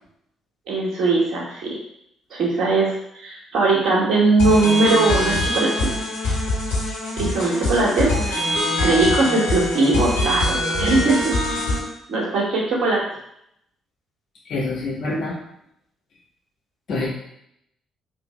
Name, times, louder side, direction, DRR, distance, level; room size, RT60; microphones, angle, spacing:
voice 1, 0.7-1.7 2.3-6.0 7.2-8.5 8.8-11.3 12.1-13.0, right 3 dB, 50° right, -4 dB, 2.3 m, -20 dB
sound 1, 4.4-11.8, left 1 dB, 70° left, 2.7 m, -23 dB
voice 2, 14.5-15.3 16.9-17.1, left 2 dB, 50° left, -4 dB, 1.8 m, -25 dB
5.1 x 3.9 x 5.3 m, 0.75 s
figure-of-eight pair, 45°, 0 cm